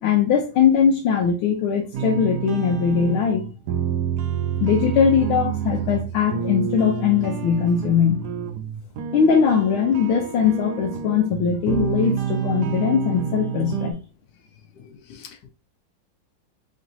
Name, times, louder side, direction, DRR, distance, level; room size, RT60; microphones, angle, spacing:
voice 1, 0.0-3.4 4.6-8.2 9.1-14.0, left 7 dB, 80° left, 1.4 m, -20 dB
sound 1, 1.9-13.9, right 8 dB, 80° right, 0.9 m, -28 dB
voice 2, 14.7-15.5, left 7 dB, 65° left, 1.2 m, -45 dB
4.2 x 3.7 x 2.6 m
omnidirectional pair, 2.3 m